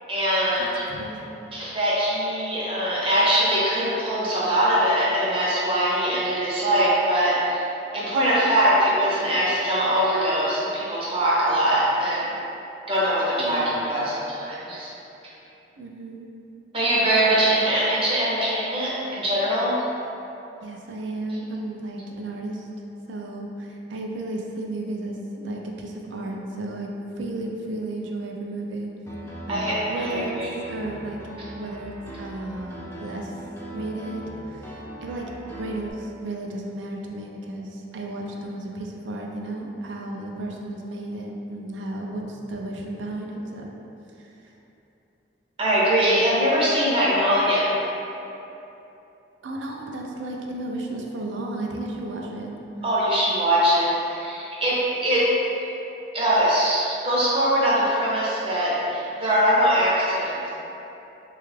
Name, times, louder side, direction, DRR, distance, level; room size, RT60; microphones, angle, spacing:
voice 1, 0.1-1.2 1.5-7.6 7.9-12.3 12.9-14.9 16.7-19.8 29.5-30.5 45.6-47.7 52.8-55.3 56.1-60.4, equal, 30° right, -7 dB, 0.6 m, -22 dB
voice 2, 0.6-1.6 13.4-13.9 15.8-16.3 17.1-17.6 20.6-22.7 23.1-28.9 29.5-30.3 30.7-31.2 31.6-33.3 33.7-43.7 44.2-44.3 49.4-52.5, right 2 dB, 80° right, 0 dB, 0.4 m, -33 dB
Piano, 29.1-35.9, right 1 dB, 15° left, 0.4 m, -39 dB
3.3 x 2.3 x 3.2 m, 3.0 s
head